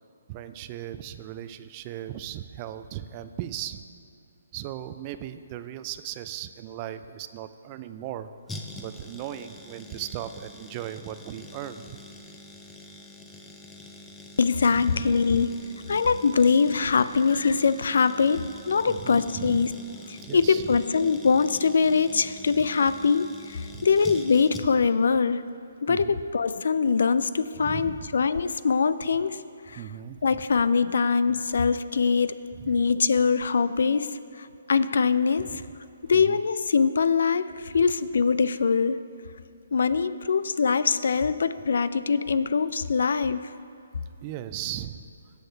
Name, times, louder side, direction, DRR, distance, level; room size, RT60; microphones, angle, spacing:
voice 1, 0.3-3.8 4.5-8.3 8.8-12.0 14.8-15.4 18.9-19.7 20.2-20.8 23.7-23.9 25.9-26.2 27.6-28.1 29.8-30.4 32.6-32.8 35.4-35.6 36.1-36.4 44.2-45.0, right 11 dB, 30° right, 11 dB, 0.4 m, -37 dB
sound 1, 8.5-25.0 25.2-25.3, left 2 dB, 10° left, 0.6 m, -45 dB
voice 2, 14.4-15.5 15.9-19.7 20.1-25.4 25.8-29.4 29.7-29.8 30.2-32.4 32.7-34.1 34.4-35.6 36.0-39.0 39.7-43.4, left 5 dB, 70° left, 14 dB, 0.4 m, -23 dB
17.0 x 6.4 x 3.3 m, 2.6 s
hypercardioid pair, 145°, 0 cm